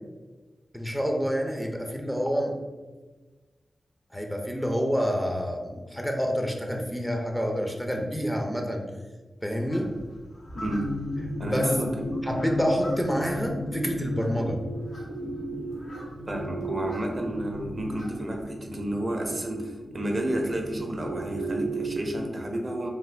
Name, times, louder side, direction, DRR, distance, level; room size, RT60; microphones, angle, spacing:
voice 1, 0.7-2.6 4.1-8.8 9.4-9.9 11.4-11.8 12.2-14.6, equal, 5° left, 2 dB, 0.5 m, -28 dB
sound 1, 9.7-18.5, equal, 70° left, 1.0 m, -45 dB
sound 2, 10.5-22.3, equal, 85° left, 0.5 m, -34 dB
voice 2, 11.4-12.3 16.3-22.9, right 1 dB, 40° right, 2 dB, 0.5 m, -31 dB
3.3 x 2.2 x 3.2 m, 1.3 s
cardioid pair, 50°, 0 cm